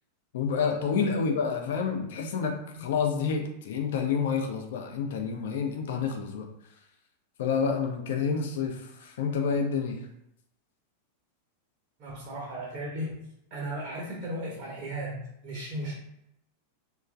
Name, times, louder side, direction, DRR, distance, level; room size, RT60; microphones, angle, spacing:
voice 1, 0.3-6.5 7.4-10.0, left 5 dB, 55° left, 3 dB, 0.4 m, -29 dB
voice 2, 12.0-13.2 13.5-16.0, right 1 dB, 40° right, -3 dB, 0.7 m, -36 dB
2.9 x 2.3 x 2.3 m, 0.80 s
figure-of-eight pair, 90°, 0 cm